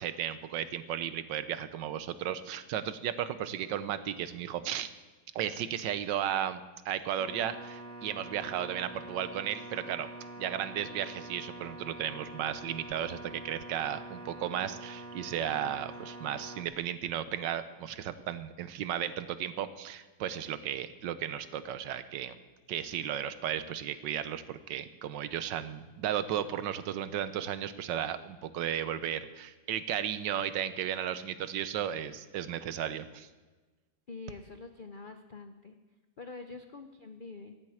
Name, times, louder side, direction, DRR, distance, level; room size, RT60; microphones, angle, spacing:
voice 1, 0.0-4.9 5.3-6.6 6.8-10.1 10.4-22.4 22.7-33.3, right 10 dB, 75° right, 13 dB, 1.4 m, -34 dB
sound 1, 7.2-16.6, right 1 dB, 60° right, 2.7 m, -45 dB
voice 2, 34.1-35.8 36.2-37.6, left 3 dB, 90° left, 6 dB, 0.4 m, -45 dB
15.0 x 7.6 x 8.5 m, 1.3 s
omnidirectional pair, 2.0 m